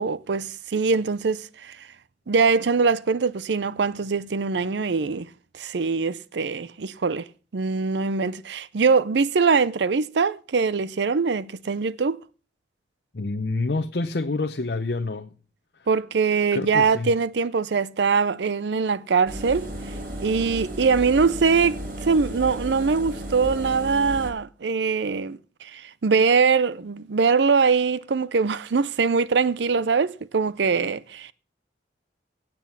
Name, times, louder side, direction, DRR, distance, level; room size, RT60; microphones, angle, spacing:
voice 1, 0.0-1.9 2.3-7.3 7.5-12.2 15.9-31.3, right 5 dB, 80° right, 0.5 m, -23 dB
voice 2, 13.1-15.3 16.5-17.1, left 3 dB, 60° left, 0.7 m, -27 dB
Engine, 19.3-24.3, right 1 dB, 50° right, 2.8 m, -34 dB
17.0 x 6.1 x 7.1 m
head